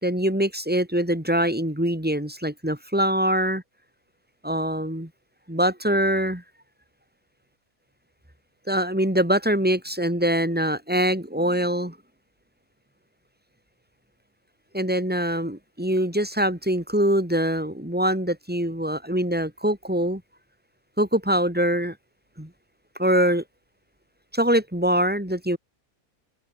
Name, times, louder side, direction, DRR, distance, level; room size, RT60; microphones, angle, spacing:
voice 1, 0.0-3.6 4.4-5.1 5.5-6.4 8.7-12.0 14.7-20.2 21.0-22.0 22.4-22.5 23.0-23.4 24.3-25.6, equal, 5° right, 3.4 m, -23 dB
open air
omnidirectional pair, 1.6 m